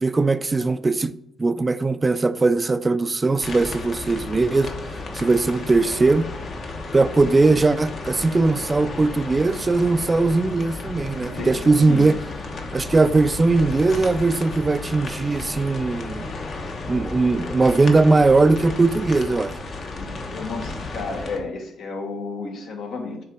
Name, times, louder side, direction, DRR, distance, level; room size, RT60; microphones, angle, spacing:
voice 1, 0.0-1.1 1.4-4.7 5.1-6.3 6.9-12.2 12.7-16.3 16.9-19.6, right 3 dB, 25° right, 0.3 m, -19 dB
sound 1, 3.4-21.4, left 3 dB, 55° left, 1.1 m, -33 dB
voice 2, 11.2-12.1 19.9-23.2, left 3 dB, 75° left, 1.3 m, -32 dB
6.6 x 3.8 x 4.7 m
cardioid pair, 90°, 0 cm